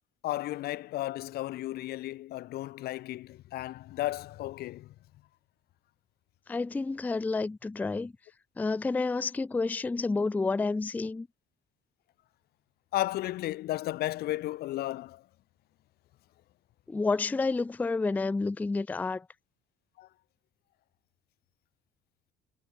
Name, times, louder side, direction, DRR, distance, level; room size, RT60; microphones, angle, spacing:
voice 1, 0.2-4.9 12.9-15.2 20.0-20.1, left 15 dB, 70° left, 0.6 m, -34 dB
voice 2, 6.5-8.1 8.6-11.3 16.9-19.3, left 3 dB, 10° left, 0.4 m, -29 dB
cardioid pair, 110°, 17 cm